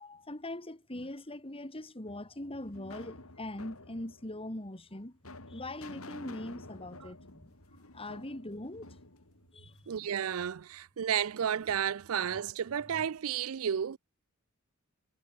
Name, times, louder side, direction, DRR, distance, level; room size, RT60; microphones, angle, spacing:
voice 1, 0.0-5.2 5.5-7.5 7.9-9.0 9.5-9.9 13.0-13.1, left 1 dB, 25° left, 2.9 m, -42 dB
sound 1, 2.1-10.2, left 2 dB, 85° left, 4.7 m, -51 dB
voice 2, 9.9-14.0, right 8 dB, 75° right, 0.5 m, -32 dB
head